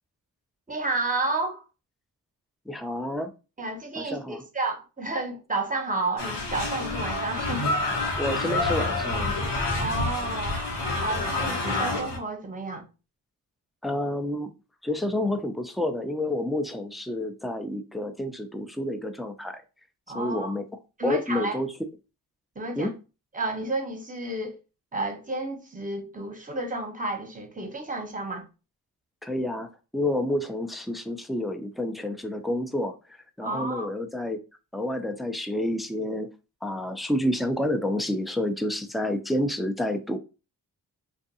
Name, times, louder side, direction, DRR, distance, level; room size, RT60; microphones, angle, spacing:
voice 1, 0.7-1.6 3.6-7.7 9.8-10.6 11.0-12.9 20.1-20.6 21.0-21.6 22.6-22.9 23.3-24.5 24.9-28.5 33.4-33.9, right 2 dB, 20° right, 0.9 m, -31 dB
voice 2, 2.7-3.3 4.0-4.4 8.2-9.4 13.8-14.5 14.8-19.6 20.1-20.6 21.0-21.7 22.8-22.9 29.2-29.7 29.9-33.0 33.4-34.4 34.7-36.3 36.6-40.2, left 1 dB, ahead, 0.4 m, -29 dB
sound 1, 6.2-12.2, left 2 dB, 85° left, 1.0 m, -28 dB
2.5 x 2.3 x 2.6 m
cardioid pair, 50°, 40 cm